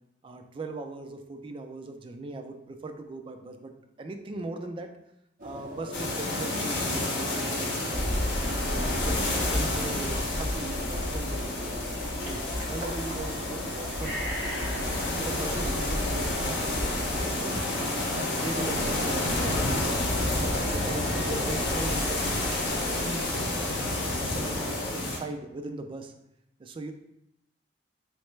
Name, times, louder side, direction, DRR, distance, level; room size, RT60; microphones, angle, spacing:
voice 1, 0.2-3.7 4.0-4.9 5.4-8.2 8.7-14.2 14.6-17.6 18.1-23.8 24.2-26.1 26.6-26.9, right 2 dB, 30° right, 5 dB, 0.3 m, -39 dB
sound 1, 5.4-21.2, left 1 dB, 50° right, 0.7 m, -41 dB
sound 2, 5.9-25.2, left 2 dB, 75° left, 0.8 m, -30 dB
sound 3, 7.9-24.9, left 1 dB, 60° left, 1.0 m, -34 dB
3.2 x 3.2 x 3.1 m, 0.82 s
head